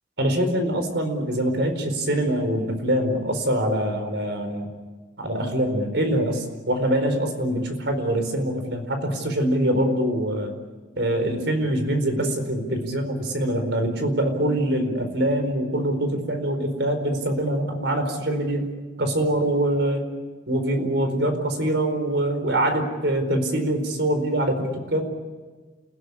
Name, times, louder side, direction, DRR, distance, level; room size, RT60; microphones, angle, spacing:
voice 1, 0.2-4.7 5.2-10.5 11.0-18.7 19.0-20.1 20.5-25.1, right 1 dB, 70° right, 7 dB, 4.6 m, -24 dB
29.5 x 16.5 x 9.9 m, 1.4 s
head